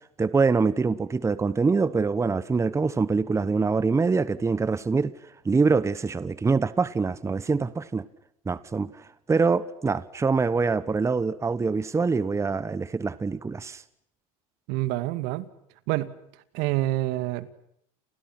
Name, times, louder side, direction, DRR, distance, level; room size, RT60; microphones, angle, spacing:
voice 1, 0.2-5.1 5.4-8.0 8.5-13.8, right 4 dB, 15° right, 17 dB, 1.1 m, -24 dB
voice 2, 14.7-15.5 15.9-16.1 16.5-17.5, right 16 dB, 65° right, 14 dB, 2.2 m, -27 dB
29.5 x 29.0 x 6.1 m, 0.72 s
supercardioid pair, 100°, 18 cm